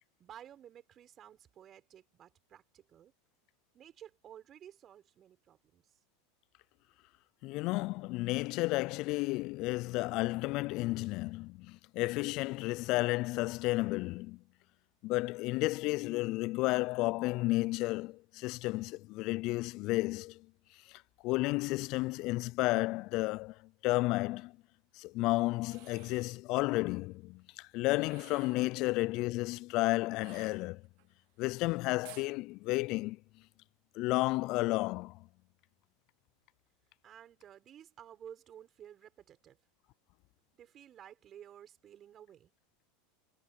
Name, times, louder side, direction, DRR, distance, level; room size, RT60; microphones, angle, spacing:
voice 1, 0.2-3.1 3.7-6.0 37.0-39.6 40.5-42.5, right 10 dB, 35° right, 5.2 m, -54 dB
voice 2, 7.4-14.4 15.0-20.5 20.9-24.5 24.9-30.8 31.4-33.2 34.0-35.3, left 21 dB, 55° left, 0.4 m, -32 dB
sound 1, 25.6-26.4 28.0-28.7 30.2-31.1 32.0-32.3, right 24 dB, 65° right, 2.1 m, -55 dB
hypercardioid pair, 105°, 0 cm